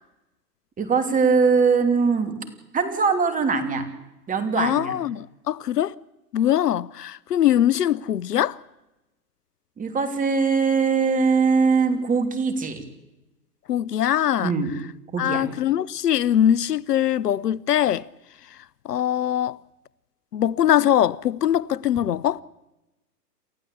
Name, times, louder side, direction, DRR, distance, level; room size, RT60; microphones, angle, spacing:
voice 1, 0.8-2.3 2.7-3.8 4.3-5.0 9.8-12.8 14.4-14.7 15.1-15.5, right 5 dB, 15° right, 3.1 m, -21 dB
voice 2, 4.6-5.9 6.3-8.6 13.7-14.5 15.2-18.1 18.8-19.6 20.3-22.4, left 11 dB, 75° left, 0.7 m, -22 dB
29.0 x 14.5 x 8.5 m
figure-of-eight pair, 115°, 48 cm